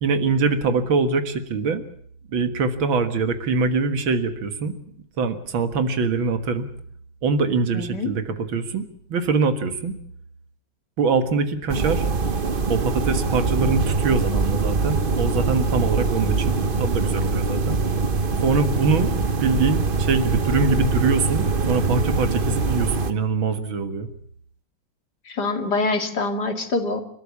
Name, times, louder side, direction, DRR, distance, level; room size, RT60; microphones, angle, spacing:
voice 1, 0.0-1.8 2.3-4.8 5.2-6.7 7.2-9.9 11.0-12.1 12.7-17.8 18.4-19.1 19.4-24.1, right 4 dB, 85° right, 9 dB, 2.5 m, -23 dB
voice 2, 7.7-8.1 25.3-27.0, left 3 dB, 55° left, 6 dB, 2.9 m, -25 dB
sound 1, 11.7-23.1, right 4 dB, 35° right, 1.0 m, -23 dB
29.5 x 13.5 x 8.4 m, 0.64 s
omnidirectional pair, 2.1 m